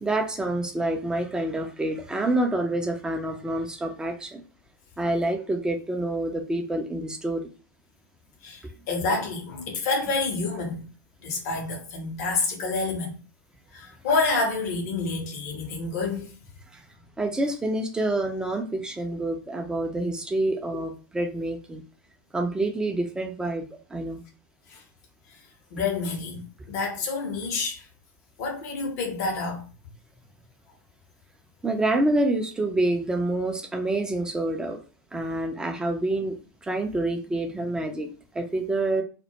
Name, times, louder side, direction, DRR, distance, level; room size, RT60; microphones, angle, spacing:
voice 1, 0.0-4.4 5.0-7.4 8.6-8.7 16.7-16.8 17.2-21.8 22.3-24.2 31.6-34.8 35.1-36.4 36.6-39.0, right 2 dB, 5° right, 0.4 m, -27 dB
voice 2, 8.4-10.9 11.2-13.2 13.7-16.3 20.7-20.9 24.7-24.8 25.3-25.4 25.7-27.9 28.4-29.6, left 3 dB, 55° left, 0.7 m, -28 dB
2.1 x 2.1 x 2.8 m
figure-of-eight pair, 90°, 11 cm